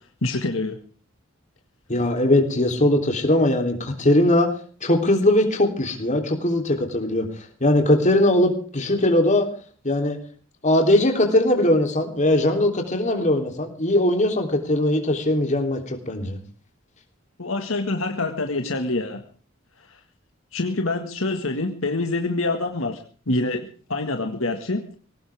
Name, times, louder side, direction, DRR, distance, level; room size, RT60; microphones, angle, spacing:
voice 1, 0.2-0.8 17.4-19.2 19.9-20.0 20.5-23.0 23.3-24.8, left 2 dB, 70° left, 5 dB, 1.9 m, -26 dB
voice 2, 1.9-4.5 4.8-7.3 7.6-9.5 9.8-10.2 10.6-16.4, left 1 dB, 35° left, 3 dB, 3.4 m, -20 dB
22.0 x 18.0 x 3.6 m, 0.41 s
head